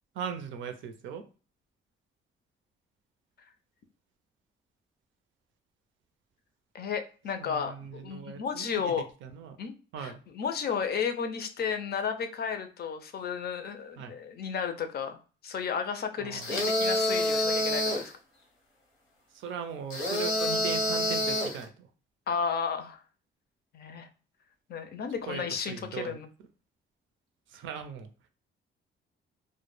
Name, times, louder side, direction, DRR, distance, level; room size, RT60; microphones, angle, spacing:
voice 1, 0.2-1.3 7.4-8.9 9.2-9.6 9.9-10.2 14.0-14.2 16.2-16.5 19.3-21.7 25.3-26.2 27.5-28.1, right 7 dB, 75° right, 8 dB, 0.5 m, -39 dB
voice 2, 6.7-9.1 9.6-15.2 15.4-18.1 22.3-23.0 23.7-24.1 24.7-26.3, left 6 dB, 55° left, 7 dB, 0.5 m, -33 dB
sound 1, 16.4-18.1 19.9-21.6, left 1 dB, 90° left, 0.8 m, -27 dB
2.1 x 2.1 x 3.0 m, 0.36 s
cardioid pair, 90°, 20 cm